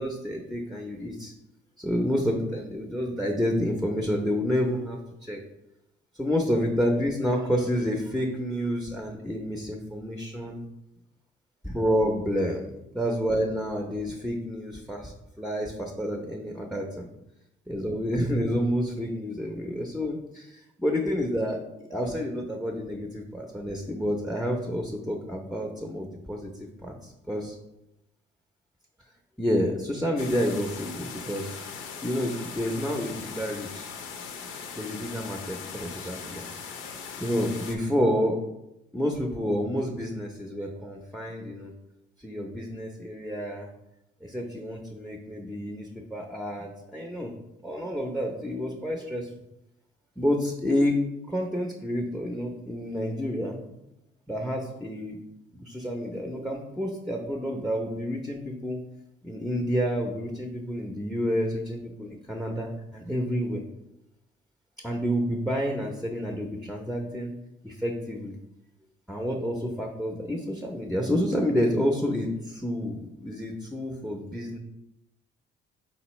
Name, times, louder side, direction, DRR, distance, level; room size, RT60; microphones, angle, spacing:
voice 1, 0.0-1.3 1.8-5.4 6.2-10.6 11.6-12.7 12.9-17.1 17.7-21.6 21.9-26.5 26.8-27.5 29.4-31.6 32.0-33.9 34.8-36.4 36.8-38.4 38.9-41.7 42.2-43.7 44.2-47.3 47.6-49.3 50.2-51.0 51.3-53.7 54.3-55.2 55.5-58.8 59.2-63.6 64.8-67.3 67.6-68.3 69.1-74.6, equal, ahead, 1 dB, 0.6 m, -29 dB
sound 1, 30.2-37.8, left 6 dB, 85° left, 0.6 m, -40 dB
4.1 x 4.1 x 3.0 m, 0.87 s
cardioid pair, 90°, 20 cm